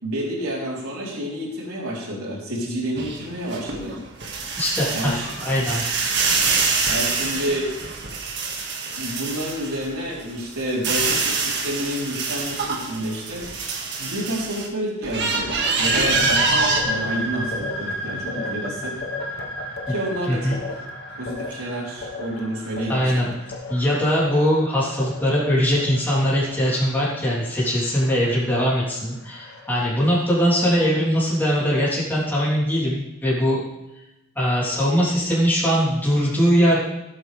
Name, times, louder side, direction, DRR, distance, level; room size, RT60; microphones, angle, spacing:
voice 1, 0.0-4.0 4.9-5.3 6.9-7.8 8.8-13.5 14.0-19.0 19.9-20.8 21.1-23.3, right 1 dB, 90° right, -3 dB, 3.8 m, -29 dB
sound 1, 3.0-9.9 10.3-14.7 15.0-16.8, right 4 dB, 55° right, 1.9 m, -25 dB
voice 2, 4.6-5.8 20.3-20.6 22.9-23.3 23.7-33.6 34.4-36.8, equal, 10° left, -8 dB, 3.4 m, -21 dB
sound 2, 15.6-23.1, equal, 75° left, 3.5 m, -30 dB
sound 3, 15.6-30.5, left 3 dB, 50° left, 1.4 m, -38 dB
17.5 x 8.9 x 3.4 m, 0.96 s
head